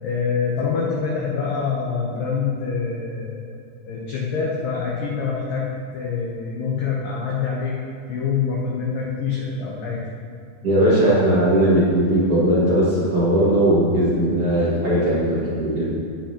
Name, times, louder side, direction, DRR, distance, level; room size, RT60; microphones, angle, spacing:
voice 1, 0.0-3.5 3.9-5.7 5.9-7.8 8.1-10.1, left 5 dB, 80° left, -3 dB, 2.0 m, -25 dB
voice 2, 10.6-15.8, right 1 dB, 45° right, -10 dB, 2.0 m, -18 dB
17.0 x 5.8 x 2.9 m, 2.5 s
omnidirectional pair, 5.2 m